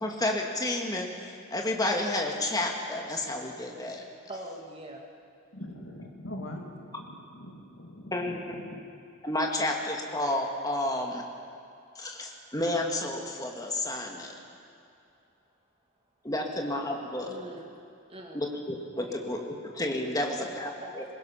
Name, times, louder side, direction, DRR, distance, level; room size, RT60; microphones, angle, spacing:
voice 1, 0.0-4.0 8.1-8.6 9.2-11.2 12.0-14.3 16.2-17.3 18.3-19.4 19.7-20.7 21.0-21.1, left 1 dB, 15° left, 1 dB, 1.9 m, -31 dB
voice 2, 4.3-5.1 17.3-17.7 18.1-18.5 19.0-19.2 20.1-21.0, right 1 dB, 25° right, 0 dB, 2.1 m, -43 dB
voice 3, 5.5-8.8, left 1 dB, 65° left, 1 dB, 2.6 m, -42 dB
22.0 x 20.5 x 5.8 m, 2.7 s
head